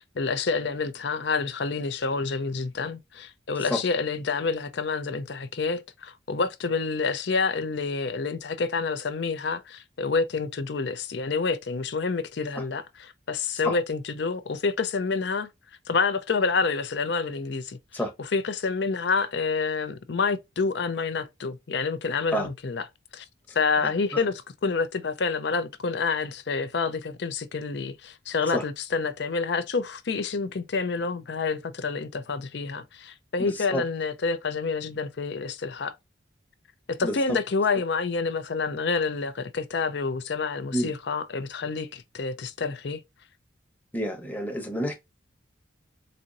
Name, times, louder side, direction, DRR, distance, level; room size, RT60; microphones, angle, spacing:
voice 1, 0.2-15.5 15.9-17.8 18.2-22.9 23.1-23.2 23.5-35.9 36.9-43.0, left 4 dB, 65° left, 0.5 m, -28 dB
voice 2, 33.4-33.8 37.0-37.1 40.7-40.9 43.9-44.9, equal, 10° left, 0.9 m, -28 dB
4.2 x 2.6 x 2.5 m
head